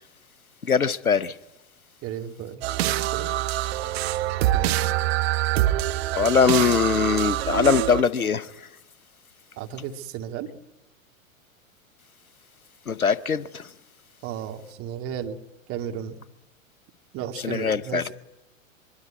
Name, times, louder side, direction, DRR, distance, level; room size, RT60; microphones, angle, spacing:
voice 1, 0.7-1.3 6.1-8.4 12.9-13.4 17.4-18.0, left 6 dB, 85° left, 1.0 m, -21 dB
voice 2, 2.0-3.3 4.5-4.9 9.6-10.5 14.2-15.4 15.7-16.2 17.1-18.1, right 9 dB, 30° right, 2.4 m, -34 dB
sound 1, 2.6-8.0, right 14 dB, 45° right, 1.2 m, -25 dB
24.0 x 23.0 x 9.5 m
figure-of-eight pair, 100°, 42 cm